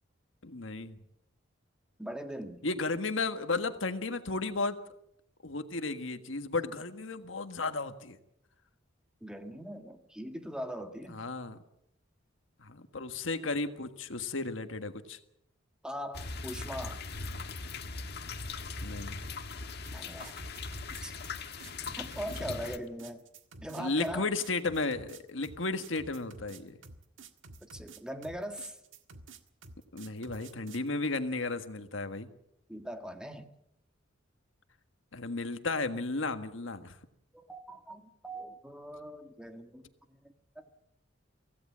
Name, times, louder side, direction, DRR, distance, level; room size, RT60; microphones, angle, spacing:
voice 1, 0.4-1.0 2.6-4.8 5.4-8.2 11.1-11.6 12.6-15.2 18.8-19.2 23.8-26.8 29.9-32.3 35.1-36.9, left 3 dB, 75° left, 8 dB, 1.6 m, -34 dB
voice 2, 2.0-2.6 9.2-11.2 15.8-17.0 19.9-20.4 21.0-21.2 22.0-23.2 23.6-24.3 27.6-28.8 32.7-33.5 37.3-40.6, equal, 5° right, 6 dB, 1.7 m, -41 dB
sound 1, 16.1-22.8, left 4 dB, 60° left, 1.6 m, -40 dB
sound 2, 19.9-30.9, right 3 dB, 75° right, 1.8 m, -51 dB
24.5 x 17.0 x 7.5 m, 0.80 s
head